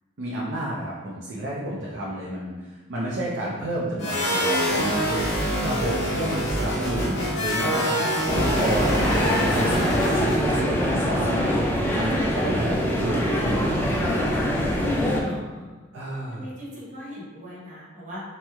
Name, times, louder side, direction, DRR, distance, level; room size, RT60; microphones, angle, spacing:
voice 1, 0.2-8.1 8.4-14.9 15.9-16.5, right 1 dB, 65° right, -5 dB, 0.5 m, -31 dB
sound 1, 4.0-10.6, equal, 60° left, 0.9 m, -25 dB
sound 2, 8.3-15.2, equal, 10° left, 0.3 m, -24 dB
voice 2, 9.4-10.0 15.0-15.9 16.3-18.2, equal, 40° right, -7 dB, 0.9 m, -38 dB
3.0 x 2.1 x 3.4 m, 1.3 s
head